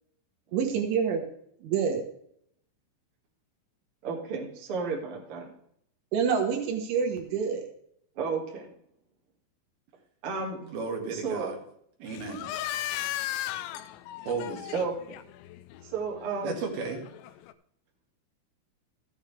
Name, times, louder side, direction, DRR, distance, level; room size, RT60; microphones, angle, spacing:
voice 1, 0.5-1.2 1.6-2.0 6.1-7.7, right 6 dB, 80° right, 3.9 m, -27 dB
voice 2, 4.0-5.5 8.2-8.7 10.2-10.6 11.1-11.5 14.7-15.2 15.8-16.6, right 4 dB, 40° right, 2.3 m, -32 dB
voice 3, 10.6-11.6 12.0-12.5 14.3-14.7 16.4-17.0, right 4 dB, 60° right, 3.5 m, -34 dB
sound 1, 12.1-17.5, left 14 dB, 80° left, 2.8 m, -37 dB
14.0 x 9.1 x 3.5 m
omnidirectional pair, 5.5 m